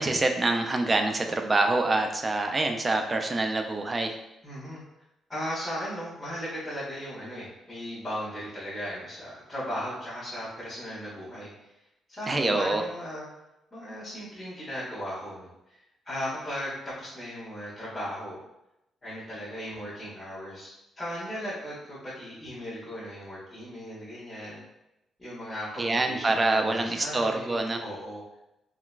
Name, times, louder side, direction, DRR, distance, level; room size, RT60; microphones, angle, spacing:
voice 1, 0.0-4.1 12.3-12.8 25.8-27.8, right 2 dB, 25° right, 4 dB, 0.4 m, -26 dB
voice 2, 4.4-4.8 5.3-11.7 12.1-13.3 13.7-18.4 19.0-24.6 25.2-28.2, equal, 20° left, -11 dB, 1.3 m, -37 dB
3.8 x 2.2 x 2.4 m, 0.88 s
cardioid pair, 95°, 0 cm